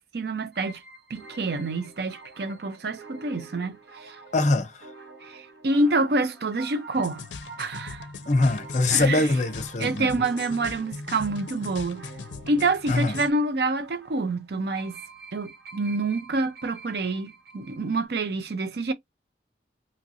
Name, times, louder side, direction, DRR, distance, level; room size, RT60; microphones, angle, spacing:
voice 1, 0.1-0.8 1.1-4.2 5.2-7.3 7.6-8.0 8.9-9.3 9.8-12.1 12.5-15.0 15.3-18.9, right 2 dB, 60° right, 0.5 m, -27 dB
sound 1, 0.5-18.1, right 3 dB, 85° right, 1.4 m, -47 dB
voice 2, 4.3-4.9 8.3-10.1 12.9-13.1, left 2 dB, 40° left, 0.5 m, -23 dB
sound 2, 6.9-13.3, left 4 dB, 90° left, 0.4 m, -39 dB
2.8 x 2.7 x 2.7 m
head